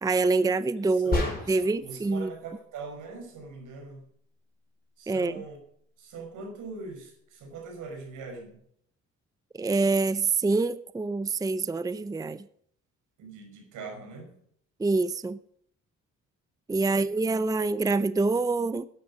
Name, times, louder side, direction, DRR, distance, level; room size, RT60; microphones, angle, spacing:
voice 1, 0.0-1.2 1.5-2.3 5.1-5.4 9.5-12.5 14.8-15.4 16.7-18.9, right 3 dB, 10° right, 0.6 m, -26 dB
voice 2, 0.9-4.1 5.0-5.6 6.0-8.6 13.2-14.4 16.8-17.1, right 3 dB, 80° right, 5.4 m, -42 dB
sound 1, 1.1-1.8, left 3 dB, 30° left, 5.1 m, -29 dB
12.0 x 10.0 x 5.0 m
cardioid pair, 90°, 30 cm